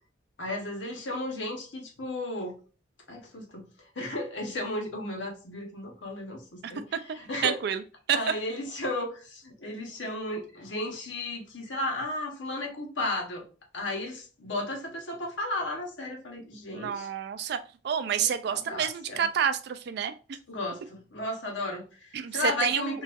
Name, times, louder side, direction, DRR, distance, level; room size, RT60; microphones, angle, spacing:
voice 1, 0.4-2.6 3.1-3.7 4.0-6.8 7.1-7.6 8.1-13.5 13.7-17.1 18.2-19.3 20.5-23.0, left 1 dB, 90° left, 1 dB, 1.0 m, -34 dB
voice 2, 7.1-7.8 8.1-8.2 16.7-17.6 17.8-20.1 22.1-23.0, right 8 dB, 65° right, 10 dB, 0.4 m, -29 dB
3.9 x 2.4 x 2.4 m, 0.36 s
head